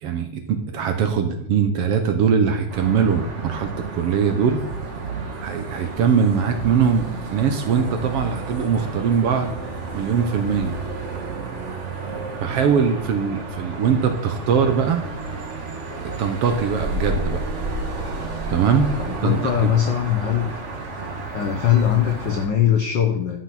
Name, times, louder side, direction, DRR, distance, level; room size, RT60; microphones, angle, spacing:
voice 1, 0.0-4.6 5.4-9.5 9.9-10.8 12.4-15.0 16.2-17.4 18.5-18.9 19.2-19.8 21.5-21.7, right 6 dB, 65° right, 6 dB, 1.8 m, -21 dB
sound 1, 2.7-22.5, right 3 dB, 40° right, 1.0 m, -31 dB
voice 2, 19.0-20.5 21.3-23.4, left 10 dB, 75° left, 3 dB, 1.0 m, -21 dB
12.0 x 5.9 x 5.9 m, 0.72 s
omnidirectional pair, 3.4 m